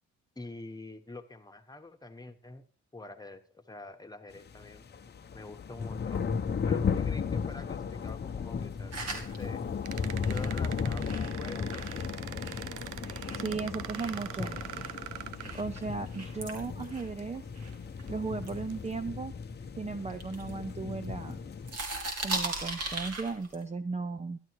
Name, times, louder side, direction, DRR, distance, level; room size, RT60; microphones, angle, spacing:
voice 1, 0.3-2.6 2.9-4.8 5.3-6.3 6.7-9.6 10.3-11.9, left 2 dB, 15° left, 6 dB, 1.3 m, -46 dB
sound 1, 4.4-21.8, left 6 dB, 35° left, 0.9 m, -35 dB
Eating Watermelon, 8.9-13.5 13.9-18.0 18.4-19.6 20.1-21.3 21.6-23.6, right 2 dB, 55° right, 3.2 m, -40 dB
sound 2, 9.9-16.1 17.0-17.1 17.6-18.1 18.7-18.9, right 13 dB, 90° right, 0.6 m, -43 dB
voice 2, 13.3-14.6 15.5-17.4 18.1-19.3 19.8-21.4 22.2-24.4, right 4 dB, 20° right, 11 dB, 0.6 m, -36 dB
12.5 x 11.0 x 4.7 m, 0.41 s
cardioid pair, 90°, 30 cm